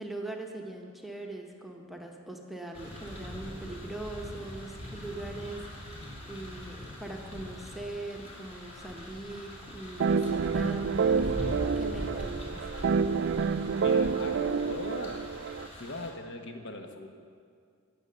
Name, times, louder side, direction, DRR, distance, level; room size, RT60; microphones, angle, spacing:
voice 1, 0.0-5.7 6.3-11.3 11.8-12.7, right 2 dB, ahead, 1 dB, 1.0 m, -41 dB
sound 1, 2.7-16.1, equal, 30° left, 2.7 m, -42 dB
sound 2, 10.0-15.7, right 5 dB, 55° right, 0.4 m, -28 dB
voice 2, 13.8-15.3 15.7-17.1, left 2 dB, 55° left, 5 dB, 1.2 m, -40 dB
18.0 x 6.7 x 6.8 m, 2.2 s
head